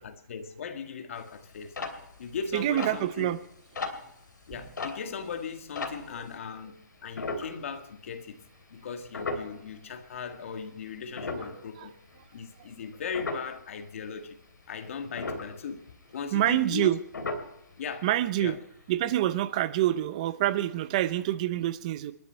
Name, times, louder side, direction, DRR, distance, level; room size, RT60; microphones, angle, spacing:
voice 1, 0.0-1.8 2.2-3.3 4.5-8.4 8.7-11.9 12.3-14.4 14.7-15.8 16.1-16.9 17.8-18.1 18.4-18.6, left 6 dB, 45° left, 1.6 m, -38 dB
sound 1, 1.2-6.4 7.1-8.1 8.4-8.6 9.1-10.4 10.8-13.7 14.0-14.6 14.9-16.9 17.1-17.9 18.3-18.4 18.6-18.8 19.2-19.3, left 3 dB, 85° left, 3.1 m, -37 dB
voice 2, 2.5-3.4 11.4-11.5 11.8-11.9 16.3-17.0 18.0-18.6 18.9-22.1, right 13 dB, 20° right, 0.6 m, -26 dB
28.5 x 10.5 x 4.5 m
hypercardioid pair, 175°, 10 cm